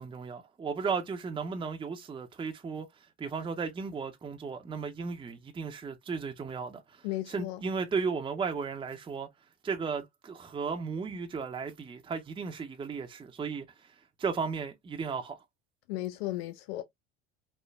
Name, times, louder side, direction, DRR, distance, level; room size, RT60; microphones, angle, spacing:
voice 1, 0.0-2.9 3.2-9.3 9.6-13.7 14.2-15.4, right 5 dB, 15° right, 0.5 m, -35 dB
voice 2, 7.0-7.6 15.9-16.8, left 16 dB, 75° left, 0.5 m, -35 dB
3.2 x 2.1 x 2.3 m
hypercardioid pair, 70°, 30 cm